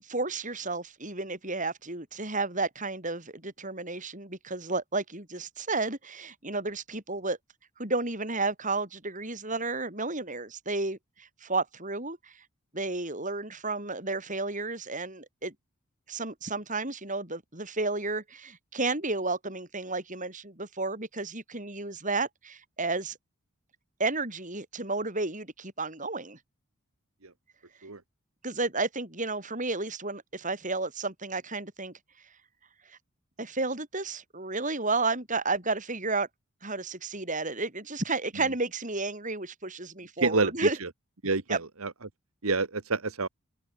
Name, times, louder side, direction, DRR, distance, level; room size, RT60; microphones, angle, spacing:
voice 1, 0.0-7.4 7.8-12.3 12.7-15.5 16.1-23.2 24.0-26.4 28.4-31.9 32.9-33.0 33.4-36.3 36.6-40.8 41.5-41.6, right 3 dB, 35° right, 7.9 m, -32 dB
voice 2, 40.2-40.7 41.2-41.9 42.4-43.3, right 3 dB, 80° right, 1.7 m, -28 dB
open air
head